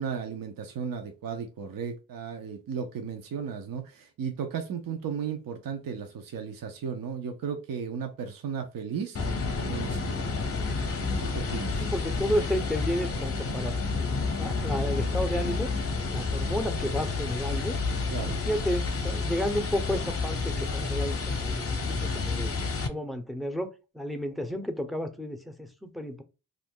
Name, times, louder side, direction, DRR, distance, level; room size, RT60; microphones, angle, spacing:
voice 1, 0.0-9.2 9.6-10.2 11.2-11.8 18.1-18.4, right 6 dB, 70° right, 0.6 m, -35 dB
sound 1, 9.1-22.9, left 4 dB, 40° left, 0.7 m, -30 dB
voice 2, 11.7-13.8 14.4-15.7 16.1-17.8 18.3-22.5 22.9-23.7 23.9-26.2, equal, ahead, 0.5 m, -32 dB
2.4 x 2.1 x 3.5 m
cardioid pair, 50°, 36 cm